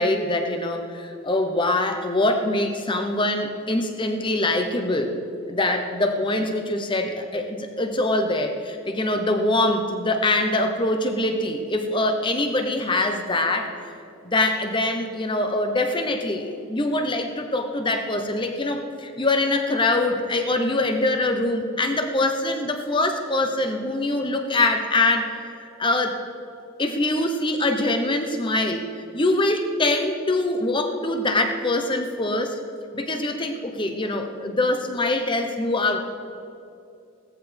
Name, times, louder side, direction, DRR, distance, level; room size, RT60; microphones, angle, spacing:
voice 1, 0.0-5.2 5.5-13.7 14.2-25.4 25.8-26.2 26.8-32.6 32.9-36.0, left 2 dB, 25° left, 5 dB, 0.9 m, -24 dB
17.5 x 14.0 x 3.5 m, 2.6 s
head